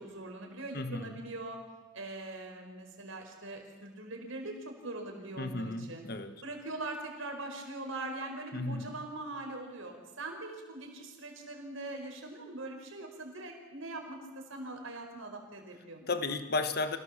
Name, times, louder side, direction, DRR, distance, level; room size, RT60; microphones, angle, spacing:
voice 1, 0.0-1.6 1.9-6.1 6.4-16.1, right 2 dB, 75° right, 3 dB, 4.9 m, -42 dB
voice 2, 0.7-1.2 5.4-6.4 8.5-8.9 16.1-17.0, left 3 dB, 50° left, 9 dB, 1.4 m, -34 dB
26.5 x 18.0 x 7.4 m, 1.3 s
head